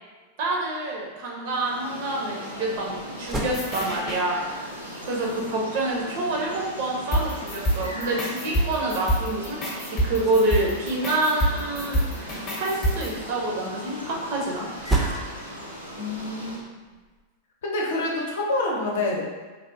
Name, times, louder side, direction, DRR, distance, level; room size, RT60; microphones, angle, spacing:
voice 1, 0.4-2.9 3.2-4.4 5.0-9.6 9.8-14.8, right 2 dB, 50° right, -2 dB, 0.7 m, -27 dB
sound 1, 1.4-16.6, equal, 90° right, 0.6 m, -38 dB
sound 2, 3.1-17.2, right 2 dB, 15° right, 0.5 m, -37 dB
sound 3, 3.5-4.2 7.1-13.1, right 1 dB, 25° left, 0.8 m, -27 dB
voice 2, 16.0-16.6 17.6-19.2, left 2 dB, 60° left, -2 dB, 0.6 m, -27 dB
3.3 x 2.4 x 2.6 m, 1.3 s
figure-of-eight pair, 90°, 0 cm